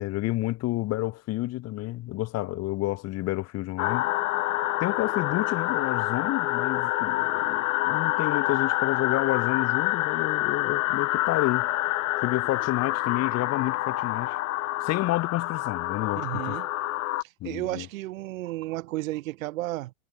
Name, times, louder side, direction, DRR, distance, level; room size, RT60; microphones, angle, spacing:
voice 1, 0.0-4.1 4.8-11.7 12.2-14.4 14.8-16.6 17.4-17.9, left 17 dB, 35° left, 5.5 m, -30 dB
sound 1, 3.8-17.2, left 16 dB, 70° left, 2.8 m, -27 dB
voice 2, 16.1-16.7 17.4-19.9, right 17 dB, 70° right, 5.1 m, -33 dB
supercardioid pair, 145°, 41 cm